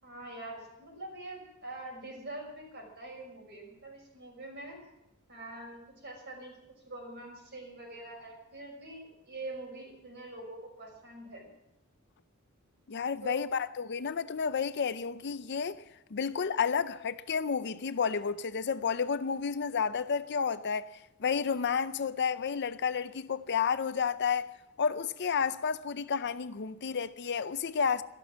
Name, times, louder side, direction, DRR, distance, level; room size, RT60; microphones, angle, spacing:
voice 1, 0.0-4.8 5.3-6.5 6.8-11.5 13.2-13.4, right 2 dB, 50° right, 6.0 m, -44 dB
voice 2, 12.9-15.8 16.1-24.5 24.8-28.0, left 6 dB, 50° left, 0.6 m, -31 dB
13.0 x 13.0 x 7.3 m
head